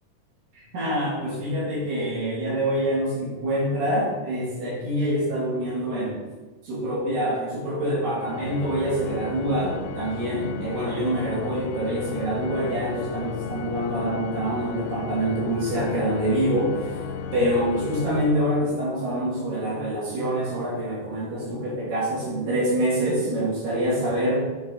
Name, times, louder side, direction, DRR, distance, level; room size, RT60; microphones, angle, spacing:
voice 1, 0.7-6.2 6.6-17.0 17.3-24.5, right 1 dB, 85° right, -6 dB, 4.3 m, -26 dB
Organ, 8.2-19.0, left 6 dB, 80° left, 2.1 m, -35 dB
8.8 x 5.0 x 4.0 m, 1.2 s
omnidirectional pair, 3.8 m